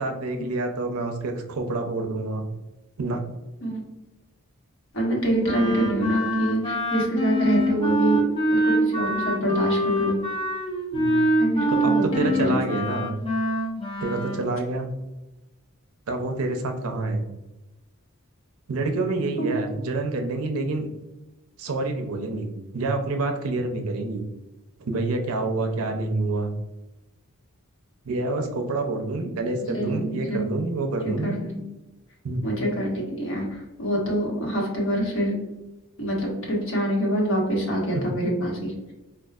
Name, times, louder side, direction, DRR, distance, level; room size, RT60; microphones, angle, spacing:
voice 1, 0.0-2.4 3.0-3.2 10.9-11.2 11.7-13.1 14.0-15.0 16.1-17.3 18.7-20.8 21.6-24.2 24.8-26.5 28.1-31.4 32.2-32.4 37.9-38.0, right 2 dB, 75° right, 4 dB, 0.5 m, -27 dB
voice 2, 4.9-8.2 8.5-10.2 11.4-12.8 19.4-19.8 29.6-30.5 31.2-31.6 32.4-35.3 36.0-38.9, right 1 dB, 60° left, -2 dB, 1.1 m, -26 dB
Wind instrument woodwind instrument, 5.4-14.4, right 1 dB, 25° left, 0.5 m, -24 dB
4.5 x 2.3 x 2.3 m, 1.0 s
head